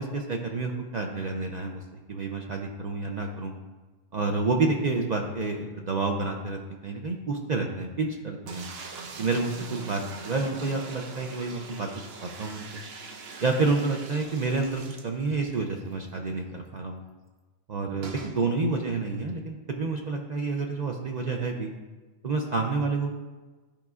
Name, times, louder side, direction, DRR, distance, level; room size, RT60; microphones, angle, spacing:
voice 1, 0.0-1.8 2.1-3.5 4.1-8.7 9.2-11.9 12.4-12.8 13.4-17.0 17.7-21.7 22.2-23.2, right 3 dB, 50° right, 2 dB, 0.6 m, -29 dB
sound 1, 8.4-15.6 15.9-16.0 16.3-16.4 18.0-18.4, right 4 dB, 65° right, 0.9 m, -42 dB
12.0 x 5.2 x 2.4 m, 1.3 s
omnidirectional pair, 1.2 m